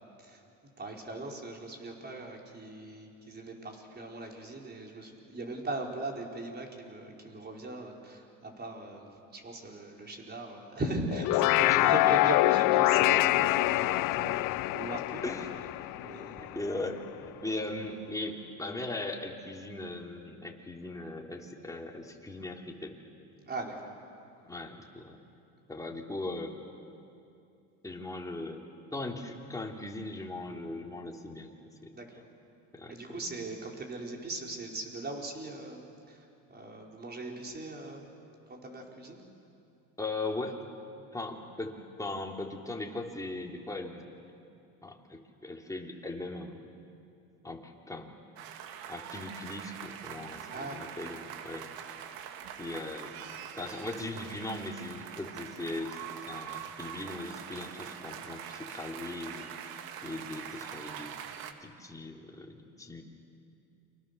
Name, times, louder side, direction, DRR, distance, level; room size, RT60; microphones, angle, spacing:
voice 1, 0.8-15.2 16.0-16.6 23.5-23.9 31.9-32.1 32.9-38.1 38.5-39.2 50.5-50.9, right 2 dB, 25° right, 0 dB, 5.0 m, -39 dB
sound 1, 11.1-16.6, left 20 dB, 60° left, 0.5 m, -25 dB
voice 2, 11.7-12.0 15.2-15.6 16.0-23.0 24.5-25.2 25.7-26.6 27.8-28.6 28.9-31.5 31.8-31.9 32.7-33.0 40.0-40.6 41.1-44.1 44.8-46.7 47.4-48.1 48.9-51.7 52.6-61.3 61.6-63.0, left 2 dB, 10° left, 0 dB, 3.3 m, -39 dB
sound 2, 48.4-61.5, right 9 dB, 70° right, 2.0 m, -43 dB
30.0 x 25.0 x 6.9 m, 2.6 s
supercardioid pair, 100°, 36 cm